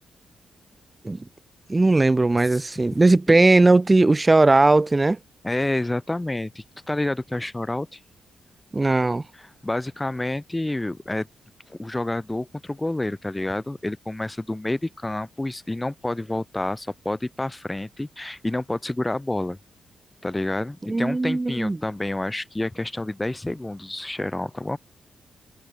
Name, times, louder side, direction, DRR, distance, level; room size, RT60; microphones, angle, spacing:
voice 1, 1.7-5.2 8.7-9.2 20.9-21.8, right 2 dB, 20° right, 2.2 m, -18 dB
voice 2, 5.4-8.0 9.4-11.3 11.7-19.6 20.2-24.8, left 1 dB, 15° left, 4.7 m, -29 dB
cardioid pair, 95°, 0 cm